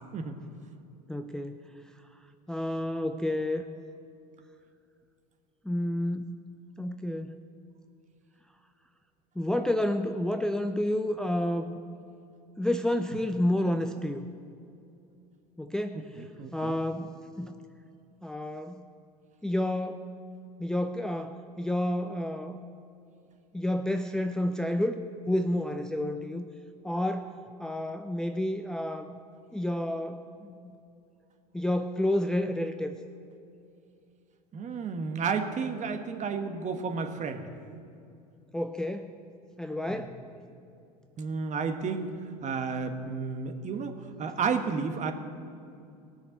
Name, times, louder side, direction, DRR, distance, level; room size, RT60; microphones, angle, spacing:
voice 1, 1.1-1.6 2.5-3.6 5.6-6.4 6.8-7.4 9.4-11.8 12.6-14.3 15.6-17.6 18.2-18.9 19.4-20.1 20.6-22.6 23.5-26.5 26.8-29.2 29.5-30.8 31.5-32.9 38.5-39.1 39.6-40.2, left 1 dB, 5° left, 7 dB, 0.5 m, -30 dB
voice 2, 16.4-16.7 34.5-37.5 39.9-40.0 41.2-45.1, right 5 dB, 35° right, 7 dB, 1.4 m, -32 dB
18.5 x 6.5 x 8.0 m, 2.6 s
hypercardioid pair, 90°, 20 cm